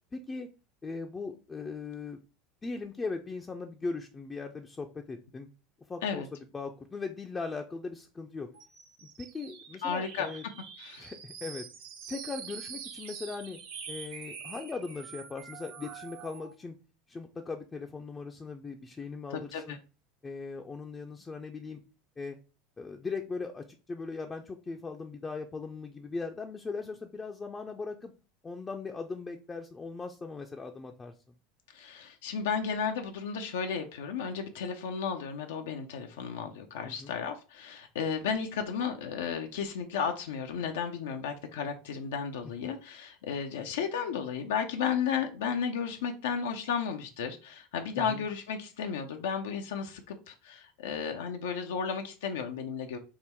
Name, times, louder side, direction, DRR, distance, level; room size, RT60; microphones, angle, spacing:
voice 1, 0.1-0.5 0.8-2.2 2.6-5.5 5.9-8.5 9.0-10.4 11.0-11.7 12.1-13.6 13.9-16.8 17.1-19.8 20.2-21.8 22.2-22.4 22.8-28.1 28.4-31.1 36.8-37.1 48.0-48.2, left 4 dB, 20° left, 3 dB, 0.4 m, -39 dB
sound 1, 8.5-16.5, right 7 dB, 75° right, 0.9 m, -45 dB
voice 2, 9.8-10.3 10.8-11.1 19.3-19.8 31.7-53.0, left 6 dB, 85° left, 4 dB, 0.4 m, -33 dB
3.6 x 2.1 x 4.3 m, 0.34 s
supercardioid pair, 100°, 0 cm